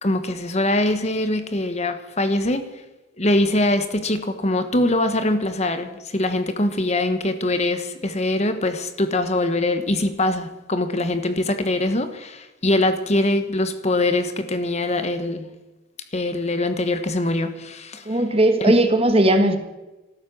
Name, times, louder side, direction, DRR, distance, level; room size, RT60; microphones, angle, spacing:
voice 1, 0.0-2.6 3.2-15.5 16.1-18.0 18.6-18.8, left 1 dB, 35° left, 9 dB, 1.2 m, -23 dB
voice 2, 18.0-19.6, right 1 dB, 30° right, 7 dB, 1.6 m, -17 dB
14.5 x 12.5 x 7.1 m, 1.1 s
head